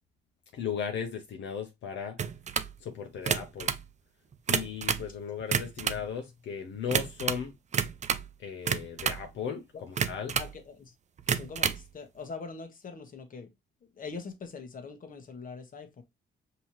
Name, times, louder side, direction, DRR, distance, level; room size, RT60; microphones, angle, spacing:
voice 1, 0.5-2.2 2.8-3.7 4.5-7.5 8.4-10.4, left 7 dB, 70° left, 0.8 m, -36 dB
sound 1, 2.2-2.7 3.1-3.8 4.3-5.1 5.4-6.0 6.9-7.4 7.7-8.3 8.7-9.3 10.0-10.5 11.2-11.8, right 7 dB, 35° right, 0.5 m, -30 dB
voice 2, 10.3-10.9 11.3-13.5 14.0-16.0, left 4 dB, 45° left, 1.2 m, -43 dB
5.4 x 2.9 x 3.0 m
cardioid pair, 90°, 20 cm